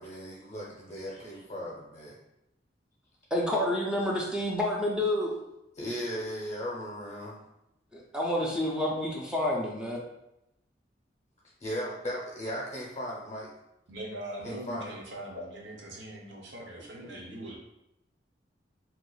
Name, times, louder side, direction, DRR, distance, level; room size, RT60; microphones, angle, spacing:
voice 1, 0.0-2.1 5.8-7.4 11.6-13.5 14.4-14.9, equal, 35° left, -6 dB, 0.6 m, -37 dB
voice 2, 3.3-5.4 7.9-10.0, left 1 dB, 5° right, -3 dB, 0.4 m, -29 dB
voice 3, 13.9-17.6, right 1 dB, 70° right, -2 dB, 0.8 m, -41 dB
2.8 x 2.4 x 3.8 m, 0.86 s
head